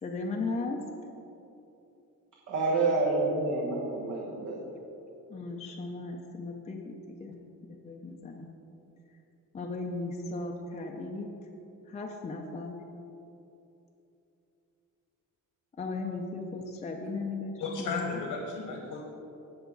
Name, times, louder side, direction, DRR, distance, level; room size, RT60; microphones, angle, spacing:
voice 1, 0.0-0.8 5.3-7.4 7.7-8.5 9.5-11.3 11.9-12.8 15.8-18.3, left 3 dB, 20° left, 1 dB, 0.6 m, -36 dB
voice 2, 2.5-4.7, right 3 dB, 65° right, -3 dB, 1.4 m, -28 dB
voice 3, 17.6-19.0, left 4 dB, 80° left, 0 dB, 1.5 m, -34 dB
17.5 x 5.8 x 4.0 m, 2.9 s
cardioid pair, 170°, 33 cm